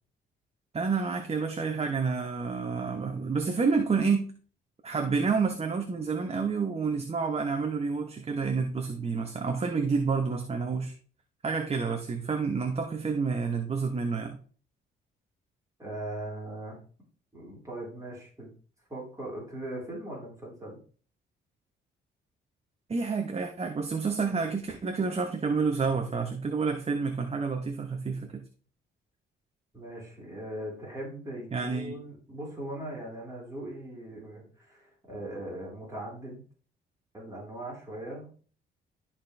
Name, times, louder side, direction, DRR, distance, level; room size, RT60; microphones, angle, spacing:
voice 1, 0.7-4.3 4.8-10.9 11.4-14.4 22.9-28.4 31.5-31.9, right 5 dB, 30° right, 1.0 m, -29 dB
voice 2, 15.8-16.8 17.3-18.5 18.9-20.8 29.7-36.4 37.1-38.3, right 1 dB, 15° right, 4.4 m, -40 dB
12.5 x 4.4 x 3.4 m
cardioid pair, 90°, 20 cm